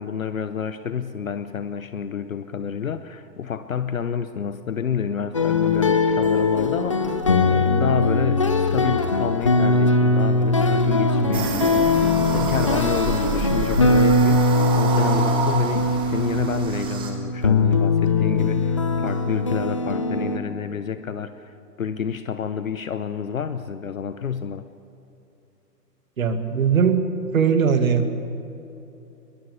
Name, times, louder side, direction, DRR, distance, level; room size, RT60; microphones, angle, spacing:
voice 1, 0.0-24.7, left 7 dB, 55° left, 12 dB, 1.0 m, -29 dB
sound 1, 5.3-20.4, left 3 dB, 20° left, 0.5 m, -21 dB
sound 2, 11.3-17.1, right 4 dB, 10° right, 1.5 m, -28 dB
voice 2, 26.2-27.0 27.3-28.1, right 6 dB, 55° right, 8 dB, 2.1 m, -19 dB
21.5 x 21.5 x 6.9 m, 2.9 s
figure-of-eight pair, 130°, 49 cm